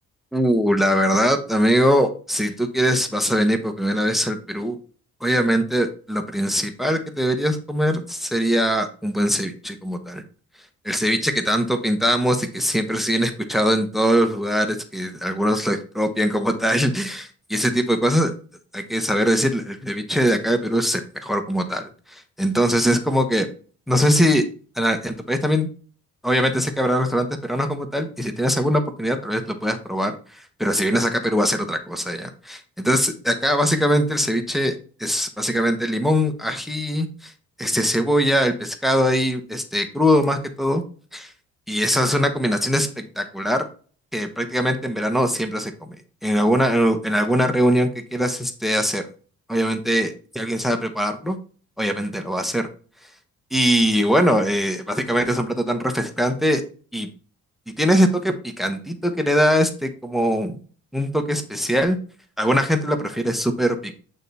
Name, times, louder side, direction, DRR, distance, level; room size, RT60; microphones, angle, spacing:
voice 1, 0.3-4.8 5.2-10.2 10.8-18.3 18.7-23.5 23.9-24.4 24.8-25.7 26.2-34.7 35.0-37.3 37.6-40.8 41.1-41.3 41.7-43.7 44.1-46.0 46.2-49.0 49.5-51.4 51.8-52.7 53.5-56.6 56.9-57.1 57.7-60.6 60.9-62.0 62.4-64.0, equal, ahead, 6 dB, 1.0 m, -22 dB
9.0 x 3.0 x 4.0 m, 0.40 s
cardioid pair, 90°, 30 cm